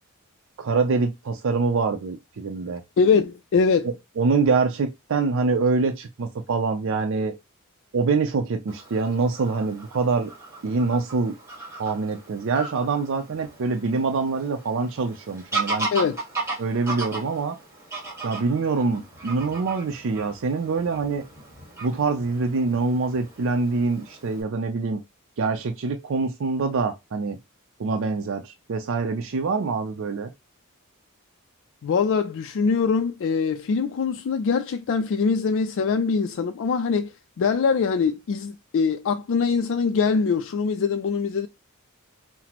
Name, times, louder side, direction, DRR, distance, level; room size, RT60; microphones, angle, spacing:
voice 1, 0.6-2.8 3.8-7.3 7.9-10.3 10.6-11.4 11.8-15.9 16.6-17.6 18.2-21.2 21.8-25.0 25.4-27.4 27.8-30.3, right 4 dB, 65° right, 0.5 m, -25 dB
voice 2, 3.0-3.9 15.9-16.2 31.8-41.5, left 5 dB, 60° left, 0.3 m, -23 dB
Fowl / Bird vocalization bird call bird song, 8.7-24.4, right 3 dB, 15° right, 1.7 m, -36 dB
5.8 x 2.0 x 2.9 m
head